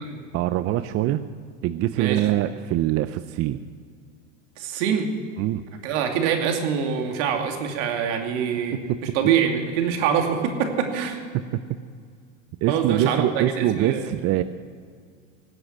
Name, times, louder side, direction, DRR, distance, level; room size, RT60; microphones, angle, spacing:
voice 1, 0.3-1.2 1.6-3.6 5.4-5.6 8.7-9.0 11.5-11.6 12.6-14.4, right 13 dB, 40° right, 12 dB, 0.5 m, -24 dB
voice 2, 2.0-2.3 4.6-5.1 5.8-8.7 9.1-11.2 12.7-14.1, right 7 dB, 65° right, 4 dB, 2.6 m, -24 dB
18.5 x 7.8 x 8.6 m, 2.1 s
hypercardioid pair, 105°, 39 cm